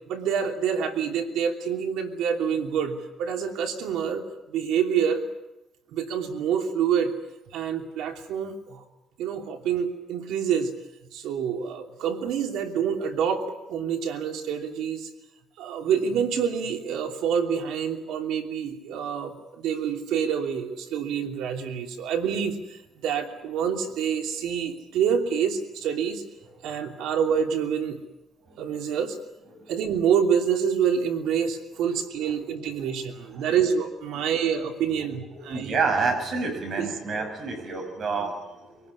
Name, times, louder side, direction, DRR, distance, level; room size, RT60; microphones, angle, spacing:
voice 1, 0.1-5.2 5.9-7.1 7.5-8.8 9.2-10.7 11.1-13.4 13.7-15.1 15.6-26.2 26.6-28.0 28.6-29.2 29.7-35.7 36.8-36.9, right 7 dB, 85° right, 4 dB, 3.0 m, -27 dB
voice 2, 35.4-38.8, right 4 dB, 50° right, 5 dB, 6.9 m, -29 dB
23.0 x 18.5 x 9.7 m, 0.97 s
cardioid pair, 125°, 0 cm